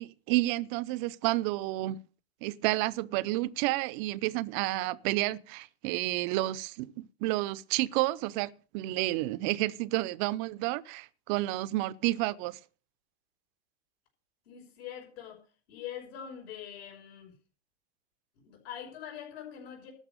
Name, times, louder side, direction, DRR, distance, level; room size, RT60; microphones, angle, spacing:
voice 1, 0.0-2.0 2.4-12.6, right 18 dB, 45° right, 0.7 m, -30 dB
voice 2, 14.5-15.4 15.7-17.3 18.4-19.9, left 9 dB, 65° left, 5.7 m, -43 dB
13.0 x 6.0 x 8.9 m
hypercardioid pair, 110°, 33 cm